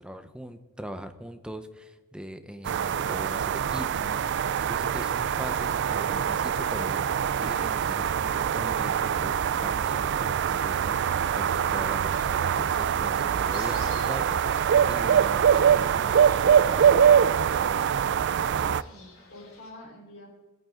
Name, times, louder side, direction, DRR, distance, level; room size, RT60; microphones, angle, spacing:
voice 1, 0.0-4.3 4.7-16.9, equal, 5° right, 8 dB, 0.8 m, -41 dB
sound 1, 2.6-18.8, right 8 dB, 55° right, 0.4 m, -24 dB
Fowl, 10.9-19.7, right 1 dB, 85° left, 4.3 m, -46 dB
voice 2, 18.4-20.3, left 1 dB, 60° left, -5 dB, 4.7 m, -47 dB
21.5 x 9.3 x 3.9 m, 1.1 s
head